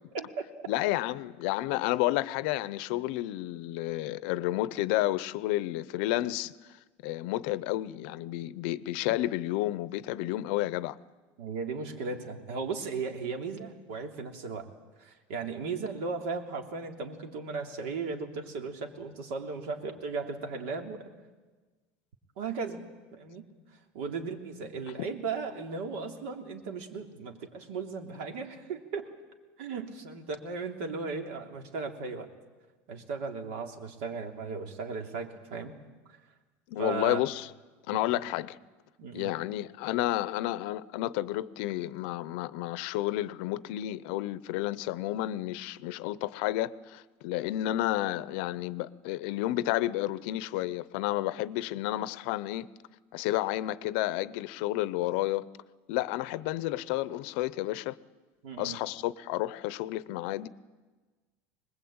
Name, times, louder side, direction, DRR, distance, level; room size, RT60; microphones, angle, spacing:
voice 1, 0.1-0.4 11.4-14.7 15.0-21.1 22.4-22.8 23.1-23.5 23.9-29.1 29.6-32.3 32.9-35.8 36.1-36.2 36.8-37.2 37.9-38.0 39.0-39.3 58.4-58.8, right 4 dB, 75° right, 3.1 m, -36 dB
voice 2, 0.7-6.5 7.0-11.0 36.7-37.5 37.9-38.6 39.1-52.7 53.1-55.5 55.9-58.0 58.6-60.5, left 16 dB, 60° left, 0.7 m, -31 dB
24.5 x 20.5 x 8.8 m
cardioid pair, 175°, 7 cm